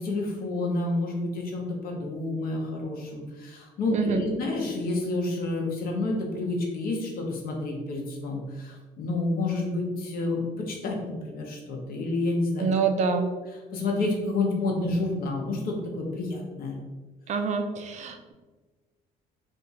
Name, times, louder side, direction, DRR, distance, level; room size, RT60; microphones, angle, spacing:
voice 1, 0.0-12.7 13.1-13.2 13.7-16.8, left 2 dB, 60° left, 0 dB, 0.9 m, -29 dB
voice 2, 12.6-13.3 17.3-18.3, right 5 dB, 45° right, 6 dB, 0.4 m, -26 dB
2.7 x 2.4 x 4.0 m, 1.3 s
cardioid pair, 110°, 17 cm